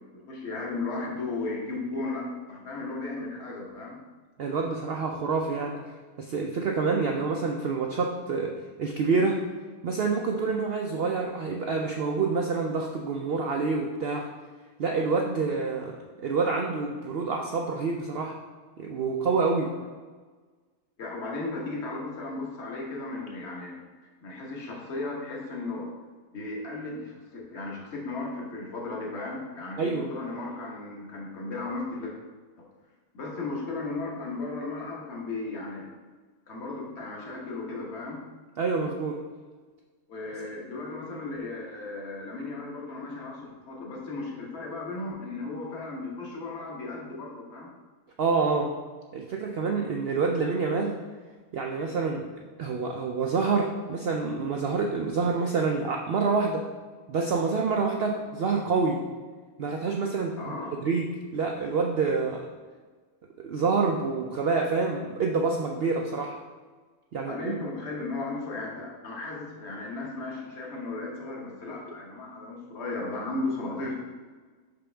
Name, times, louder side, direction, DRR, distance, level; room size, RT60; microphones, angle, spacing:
voice 1, 0.1-4.0 19.5-19.8 21.0-23.8 24.2-25.9 26.3-32.1 32.6-32.7 33.1-35.9 36.5-38.2 40.1-47.7 60.4-60.7 67.2-73.9, left 3 dB, 45° left, -2 dB, 1.4 m, -35 dB
voice 2, 4.4-9.4 9.8-14.3 14.8-16.0 16.2-18.4 18.8-19.7 29.8-30.1 38.6-39.2 48.2-48.7 49.1-51.0 51.5-52.3 52.6-56.7 57.1-59.0 59.6-61.1 61.3-62.4 63.4-66.4 67.1-67.6, right 4 dB, 75° right, 1 dB, 0.5 m, -27 dB
6.0 x 5.2 x 3.3 m, 1.4 s
omnidirectional pair, 1.6 m